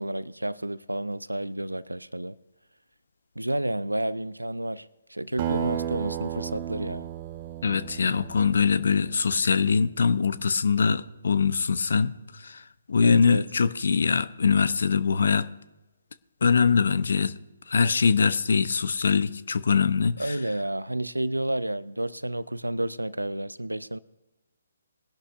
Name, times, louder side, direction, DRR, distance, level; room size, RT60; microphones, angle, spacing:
voice 1, 0.0-2.4 3.4-7.1 13.0-13.4 20.2-24.0, right 1 dB, 90° right, 0.5 m, -30 dB
Acoustic guitar, 5.4-10.2, right 11 dB, 35° right, 1.1 m, -34 dB
voice 2, 7.6-15.5 16.4-17.3 17.7-20.4, left 5 dB, 60° left, 0.7 m, -23 dB
21.5 x 11.5 x 2.6 m
figure-of-eight pair, 140°, 0 cm